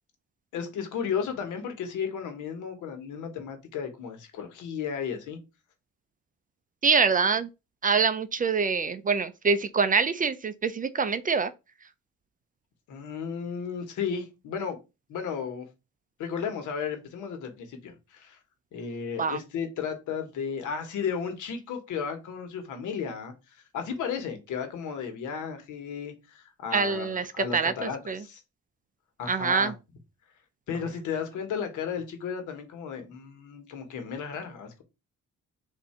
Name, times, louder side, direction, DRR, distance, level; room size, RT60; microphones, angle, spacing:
voice 1, 0.5-5.4 12.9-14.8 15.1-15.6 16.2-18.4 18.7-28.4 29.2-29.7 30.7-34.8, left 6 dB, 80° left, 1.2 m, -34 dB
voice 2, 6.8-7.5 7.8-11.5 19.2-19.4 26.7-28.2 29.3-29.7, right 5 dB, 30° right, 0.4 m, -25 dB
3.6 x 2.7 x 4.3 m
cardioid pair, 90°, 30 cm